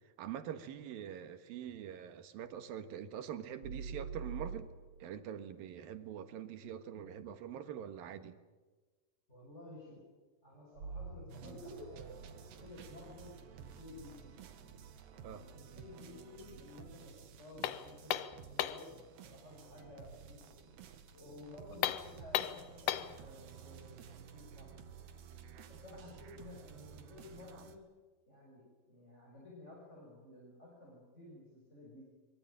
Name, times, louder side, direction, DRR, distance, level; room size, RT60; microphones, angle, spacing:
voice 1, 0.2-4.7 5.0-8.4 15.2-15.5, right 9 dB, 70° right, 9 dB, 3.1 m, -44 dB
sound 1, 3.6-5.2 10.8-13.8, right 4 dB, 40° right, 5.0 m, -46 dB
voice 2, 9.3-10.0 10.4-14.4 15.5-18.9 19.2-20.7 21.1-24.7 25.7-27.8 28.3-32.0, left 2 dB, 15° left, -3 dB, 6.6 m, -54 dB
sound 2, 11.3-27.8, right 7 dB, 90° right, 4.0 m, -54 dB
sound 3, 17.6-18.9 21.7-23.2, left 12 dB, 70° left, 2.2 m, -36 dB
24.5 x 22.0 x 8.9 m, 1.3 s
omnidirectional pair, 4.6 m